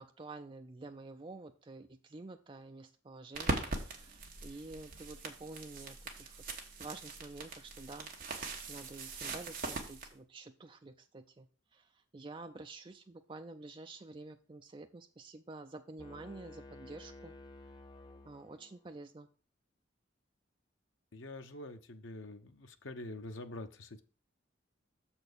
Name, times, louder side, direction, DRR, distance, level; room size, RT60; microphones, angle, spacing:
voice 1, 0.0-6.4 6.8-17.3 18.2-19.3, right 2 dB, 25° right, 6 dB, 0.4 m, -49 dB
sound 1, 3.3-10.1, right 3 dB, 45° right, 1.4 m, -41 dB
sound 2, 16.0-18.9, left 2 dB, 20° left, 0.7 m, -53 dB
voice 2, 21.1-24.0, left 2 dB, 80° left, 7 dB, 0.8 m, -46 dB
6.9 x 4.4 x 6.7 m, 0.38 s
head